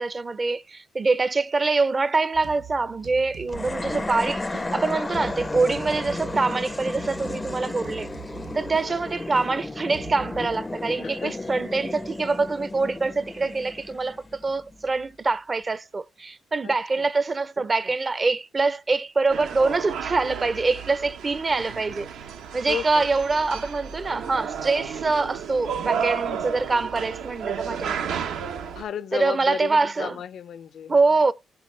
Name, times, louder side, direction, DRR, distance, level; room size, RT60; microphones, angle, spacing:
voice 1, 0.0-8.1 8.5-22.1 22.5-28.1 29.1-30.2 30.9-31.3, right 3 dB, 30° right, 0.6 m, -24 dB
sound 1, 2.3-10.6, right 9 dB, 65° right, 0.7 m, -43 dB
sound 2, 3.5-14.9, left 2 dB, 20° left, 0.5 m, -33 dB
voice 2, 11.0-11.5 16.6-17.1 22.7-23.1 28.7-29.7 30.0-30.9, left 8 dB, 65° left, 0.5 m, -34 dB
sound 3, 19.3-28.8, right 7 dB, 80° right, 1.1 m, -32 dB
13.5 x 6.9 x 3.2 m
cardioid pair, 90°, 0 cm